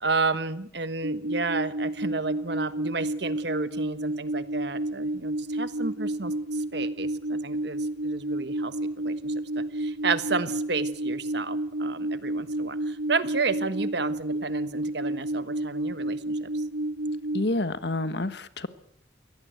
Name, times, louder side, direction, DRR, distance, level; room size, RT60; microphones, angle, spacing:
voice 1, 0.0-8.7 9.0-16.6, right 4 dB, 60° right, 12 dB, 1.3 m, -32 dB
sound 1, 1.0-17.5, right 1 dB, 85° right, 2.1 m, -30 dB
voice 2, 17.3-18.7, left 2 dB, 60° left, 12 dB, 1.3 m, -28 dB
23.0 x 18.0 x 8.0 m, 0.70 s
head